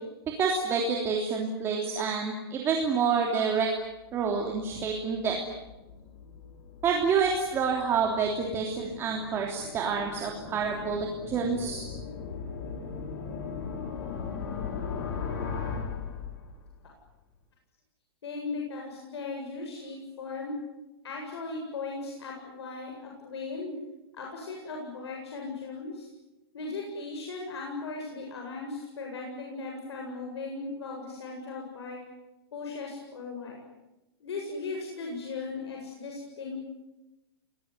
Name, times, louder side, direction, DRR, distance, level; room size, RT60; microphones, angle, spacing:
voice 1, 0.4-3.7 4.1-5.4 6.8-11.8, right 5 dB, 20° right, 1 dB, 3.2 m, -28 dB
sound 1, 3.9-16.9, left 5 dB, 55° left, 4.4 m, -39 dB
voice 2, 18.2-20.5 21.0-23.8 24.1-26.1 26.5-32.0 32.5-33.6 34.2-36.7, left 3 dB, 85° left, 0 dB, 7.9 m, -37 dB
28.5 x 21.0 x 9.7 m, 1.0 s
hypercardioid pair, 160°, 13 cm